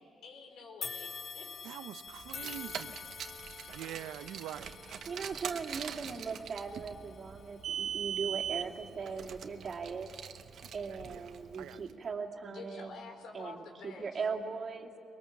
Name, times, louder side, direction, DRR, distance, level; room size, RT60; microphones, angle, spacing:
voice 1, 0.0-1.5 12.4-14.2, left 3 dB, 75° left, 3 dB, 4.3 m, -49 dB
sound 1, 0.8-10.1 10.6-10.8 11.8-11.9, left 6 dB, 45° left, 0.5 m, -48 dB
voice 2, 1.6-3.1 3.7-4.7 10.9-11.2 11.6-12.0, right 12 dB, 85° right, 14 dB, 0.6 m, -45 dB
Car, 2.2-11.7, right 9 dB, 65° right, 1.1 m, -41 dB
voice 3, 5.1-10.1 10.7-13.0 13.3-14.9, right 5 dB, 45° right, 1 dB, 2.4 m, -39 dB
23.5 x 21.5 x 7.3 m, 2.8 s
cardioid pair, 90°, 0 cm